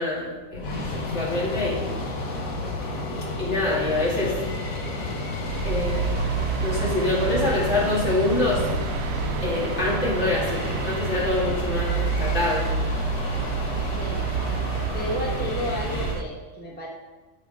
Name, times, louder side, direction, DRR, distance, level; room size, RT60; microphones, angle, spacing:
voice 1, 0.0-1.8 3.4-4.4 5.6-6.2 6.6-8.7 9.4-12.7, left 2 dB, 55° left, -7 dB, 2.9 m, -26 dB
sound 1, 0.5-16.1, left 2 dB, 85° left, 1.6 m, -31 dB
sound 2, 5.5-16.2, right 7 dB, 80° right, 1.0 m, -29 dB
voice 2, 13.8-14.3 14.9-16.9, equal, 10° left, -3 dB, 1.0 m, -32 dB
12.5 x 5.6 x 3.6 m, 1.3 s
omnidirectional pair, 1.4 m